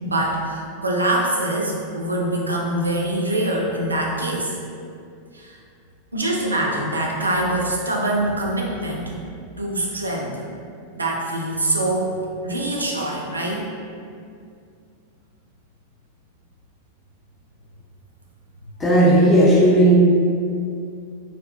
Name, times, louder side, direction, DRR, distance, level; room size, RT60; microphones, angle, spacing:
voice 1, 0.0-4.5 5.3-5.6 6.1-9.1 9.6-10.4 10.9-12.2 12.4-13.7, right 1 dB, 80° right, -1 dB, 0.3 m, -24 dB
voice 2, 18.8-20.0, right 1 dB, 20° left, -6 dB, 0.6 m, -14 dB
2.3 x 2.1 x 2.5 m, 2.4 s
figure-of-eight pair, 90°, 0 cm